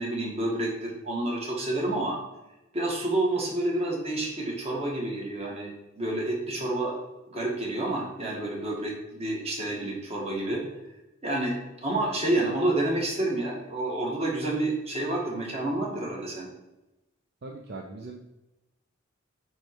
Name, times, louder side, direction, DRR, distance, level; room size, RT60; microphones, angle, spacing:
voice 1, 0.0-2.2 2.7-6.9 7.3-10.6 11.2-11.5 11.8-16.5, right 2 dB, 30° right, -2 dB, 1.8 m, -29 dB
voice 2, 17.4-18.2, right 3 dB, 55° right, 1 dB, 0.6 m, -40 dB
9.1 x 3.2 x 4.7 m, 0.98 s
head